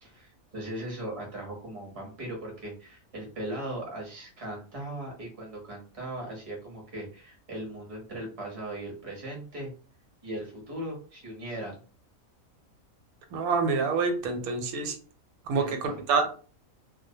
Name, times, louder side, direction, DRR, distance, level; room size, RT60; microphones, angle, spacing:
voice 1, 0.0-9.7 10.2-11.8 15.5-16.0, right 1 dB, 30° right, -1 dB, 0.8 m, -38 dB
voice 2, 13.3-15.0 15.5-16.3, right 4 dB, 90° right, 5 dB, 1.1 m, -27 dB
2.3 x 2.0 x 2.7 m, 0.40 s
omnidirectional pair, 1.5 m